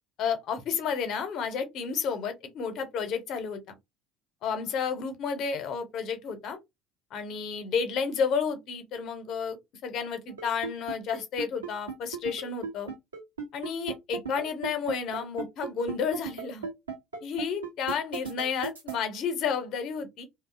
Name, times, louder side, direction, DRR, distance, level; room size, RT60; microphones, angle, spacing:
voice 1, 0.2-3.8 4.4-6.6 7.1-9.6 9.8-12.9 13.5-16.7 17.2-20.3, left 6 dB, 50° left, 0.6 m, -31 dB
sound 1, 10.3-19.0, right 6 dB, 85° right, 0.7 m, -35 dB
2.6 x 2.0 x 2.4 m
figure-of-eight pair, 60°, 0 cm